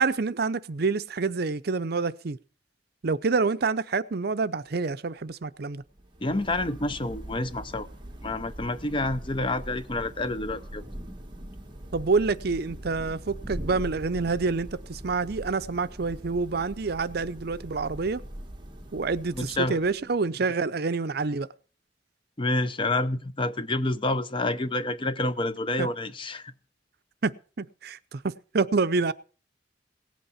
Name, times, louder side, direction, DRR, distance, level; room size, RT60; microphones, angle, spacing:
voice 1, 0.0-2.4 3.0-5.8 11.9-18.2 18.9-21.5 25.8-25.9 27.2-29.1, right 4 dB, 55° right, 0.6 m, -27 dB
Thunder / Rain, 5.8-20.2, right 1 dB, 25° right, 1.6 m, -42 dB
voice 2, 6.2-7.9 8.2-10.8 19.3-19.8 22.4-26.5, left 2 dB, 25° left, 0.7 m, -28 dB
18.0 x 8.3 x 5.7 m
head